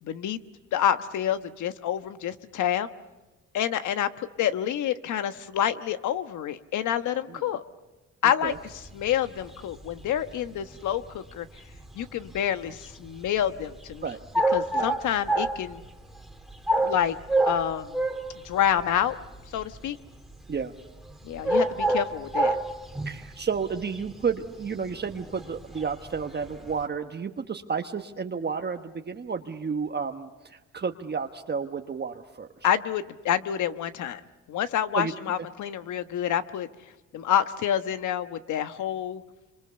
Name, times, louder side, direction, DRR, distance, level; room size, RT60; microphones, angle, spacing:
voice 1, 0.0-0.4 0.7-2.9 3.5-7.6 8.2-11.5 11.9-14.1 14.5-15.8 16.8-17.2 17.4-18.0 18.4-19.2 19.5-20.0 21.2-22.6 32.6-34.2 34.5-36.7 37.1-39.2, left 10 dB, 75° left, 10 dB, 1.3 m, -28 dB
sound 1, 8.5-26.9, right 1 dB, ahead, 2.3 m, -30 dB
voice 2, 23.0-32.5 34.9-35.1, right 6 dB, 35° right, 5 dB, 1.2 m, -31 dB
27.0 x 26.0 x 6.9 m, 1.1 s
cardioid pair, 90°, 30 cm